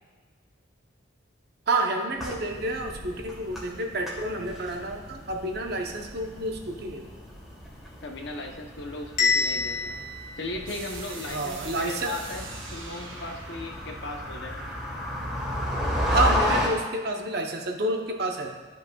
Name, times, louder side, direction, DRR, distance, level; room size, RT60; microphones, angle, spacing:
voice 1, 1.7-7.1 11.3-12.2 16.1-18.5, right 2 dB, 50° right, 2 dB, 0.8 m, -29 dB
sound 1, 2.1-16.7, left 1 dB, ahead, 1.3 m, -33 dB
voice 2, 8.0-10.0 10.4-12.4 12.7-14.6, left 2 dB, 60° left, 3 dB, 0.8 m, -37 dB
Bell, 9.2-11.2, left 5 dB, 40° left, 1.1 m, -28 dB
sound 2, 10.7-15.5, right 4 dB, 80° right, 1.2 m, -43 dB
12.0 x 5.4 x 2.3 m, 1.5 s
head